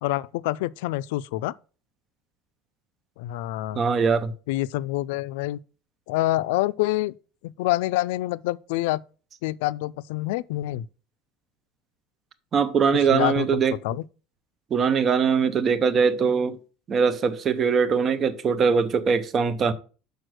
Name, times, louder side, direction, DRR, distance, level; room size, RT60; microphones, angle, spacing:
voice 1, 0.0-1.5 3.2-3.8 4.5-5.6 6.1-7.1 7.4-9.0 9.4-10.9 13.1-14.0, left 17 dB, 85° left, 0.3 m, -27 dB
voice 2, 3.7-4.3 12.5-13.7 14.7-16.6 16.9-19.7, right 6 dB, 30° right, 0.7 m, -22 dB
6.4 x 4.9 x 6.2 m
cardioid pair, 150°, 0 cm